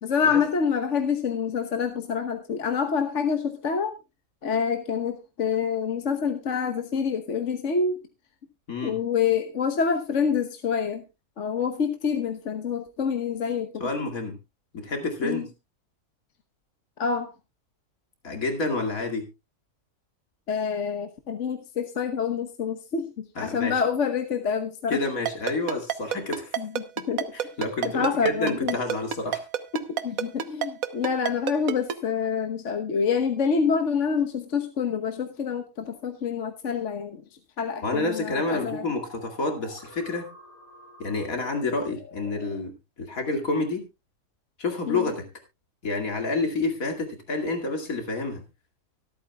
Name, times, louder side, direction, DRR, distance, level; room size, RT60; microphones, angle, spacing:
voice 1, 0.0-3.9 4.4-8.0 8.8-11.0 11.4-13.9 15.2-15.5 17.0-17.3 20.5-25.0 26.6-27.3 27.9-28.8 30.0-37.2 37.6-38.8 44.9-45.1, left 6 dB, 60° left, 6 dB, 1.4 m, -27 dB
voice 2, 13.8-14.4 14.7-15.5 18.2-19.3 23.4-23.8 24.9-26.5 27.3-29.4 29.7-30.0 37.8-40.3 41.0-42.7 43.0-43.8 44.6-45.3 45.8-48.4, left 3 dB, 75° left, 3 dB, 2.8 m, -29 dB
Ringtone, 25.3-31.9, right 9 dB, 75° right, 1.4 m, -27 dB
sound 1, 38.7-42.6, left 2 dB, 35° left, 3.4 m, -48 dB
24.0 x 8.9 x 2.3 m, 0.24 s
omnidirectional pair, 1.5 m